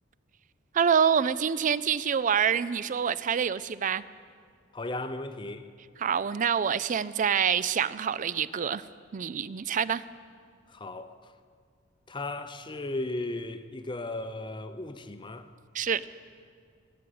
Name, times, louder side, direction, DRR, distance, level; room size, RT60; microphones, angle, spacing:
voice 1, 0.7-4.0 6.0-8.8 9.1-10.0 15.7-16.0, right 7 dB, 40° right, 17 dB, 0.4 m, -26 dB
voice 2, 4.7-5.7 10.7-11.3 12.1-15.5, left 2 dB, 25° left, 10 dB, 0.6 m, -36 dB
19.5 x 7.7 x 8.7 m, 2.1 s
head